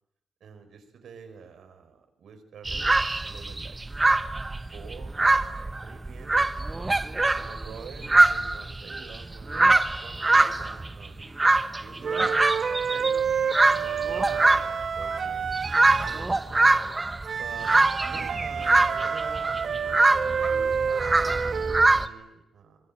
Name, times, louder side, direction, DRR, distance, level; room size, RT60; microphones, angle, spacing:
voice 1, 0.4-2.8 3.1-3.8 4.7-5.5 5.8-6.9 7.3-9.6 10.0-11.4 11.8-13.3 13.7-16.7 17.4-17.7 18.1-22.8, right 6 dB, 85° right, 7 dB, 5.0 m, -46 dB
sound 1, 2.7-22.1, right 2 dB, 20° right, 1.1 m, -24 dB
sound 2, 12.0-16.3 17.2-21.9, right 6 dB, 60° right, 1.4 m, -29 dB
24.5 x 21.0 x 8.9 m, 0.81 s
wide cardioid pair, 125°, 0 cm